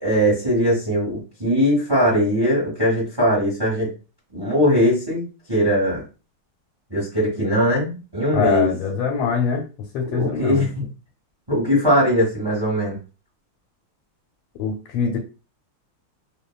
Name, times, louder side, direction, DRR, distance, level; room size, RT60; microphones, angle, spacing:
voice 1, 0.0-3.9 4.3-5.2 5.5-6.0 6.9-8.7 10.1-10.8 11.5-13.0, equal, 35° right, -4 dB, 0.3 m, -20 dB
voice 2, 8.3-9.7 9.9-10.6 14.5-15.2, left 6 dB, 85° left, 1 dB, 1.5 m, -23 dB
3.2 x 2.1 x 2.3 m, 0.32 s
omnidirectional pair, 2.3 m